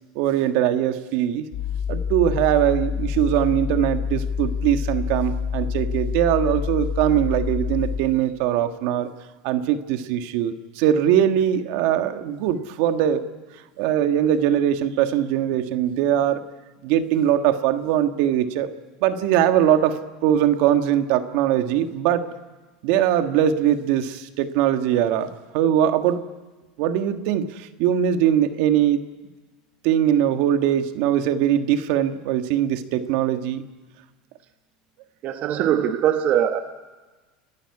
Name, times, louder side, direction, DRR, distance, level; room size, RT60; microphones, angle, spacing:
voice 1, 0.1-1.4 1.9-9.1 9.4-13.2 13.8-16.4 16.8-18.7 19.0-22.3 22.8-26.2 26.8-29.0 29.8-33.6, right 10 dB, 65° right, 8 dB, 1.5 m, -21 dB
sound 1, 1.5-8.0, left 6 dB, 45° left, 4.9 m, -27 dB
voice 2, 35.2-36.6, right 10 dB, 45° right, 7 dB, 1.1 m, -21 dB
29.5 x 11.5 x 9.7 m, 1.3 s
supercardioid pair, 130°, 4 cm